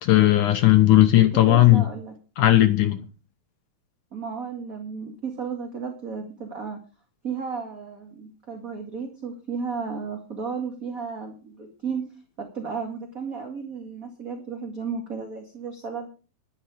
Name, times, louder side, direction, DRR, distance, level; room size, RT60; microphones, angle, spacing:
voice 1, 0.0-1.9 2.4-3.0, left 14 dB, 70° left, 2.3 m, -16 dB
voice 2, 1.5-2.1 4.1-6.8 7.2-12.1 12.4-16.1, right 5 dB, 30° right, 1.9 m, -33 dB
12.0 x 11.5 x 5.0 m
omnidirectional pair, 4.2 m